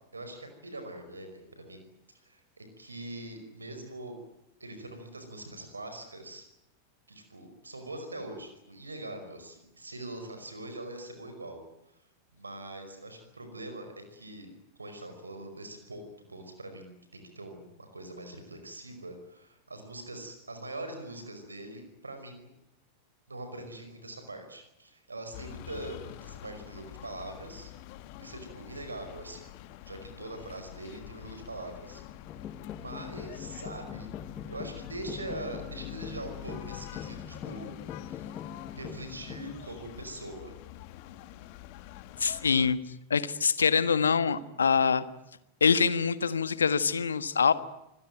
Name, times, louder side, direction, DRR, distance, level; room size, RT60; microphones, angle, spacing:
voice 1, 0.1-1.8 2.2-4.2 4.6-6.4 7.1-11.6 12.3-14.5 14.8-22.5 23.3-27.7 28.2-29.4 29.8-32.0 32.7-34.1 34.5-38.3 38.7-40.5, right 2 dB, 80° right, 6 dB, 5.3 m, -43 dB
sound 1, 25.3-42.7, left 14 dB, 45° left, 1.8 m, -46 dB
sound 2, 32.3-39.7, left 8 dB, 30° left, 1.6 m, -42 dB
voice 2, 42.2-42.8 43.1-45.0 45.6-47.5, left 6 dB, 70° left, 15 dB, 1.5 m, -24 dB
26.0 x 21.0 x 9.2 m, 0.85 s
figure-of-eight pair, 90°, 0 cm